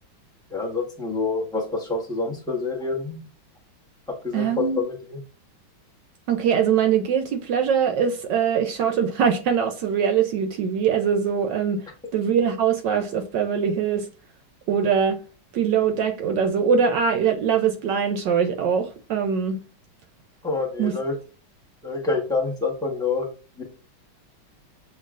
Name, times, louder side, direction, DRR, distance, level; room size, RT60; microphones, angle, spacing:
voice 1, 0.5-3.2 4.1-5.2 20.4-21.2 21.8-23.3 23.6-23.7, left 3 dB, 5° left, 0.5 m, -27 dB
voice 2, 4.3-4.8 6.3-11.8 12.1-14.1 14.7-15.2 15.5-19.6 20.8-20.9, right 7 dB, 70° right, 1.1 m, -22 dB
6.8 x 2.9 x 2.4 m
omnidirectional pair, 2.2 m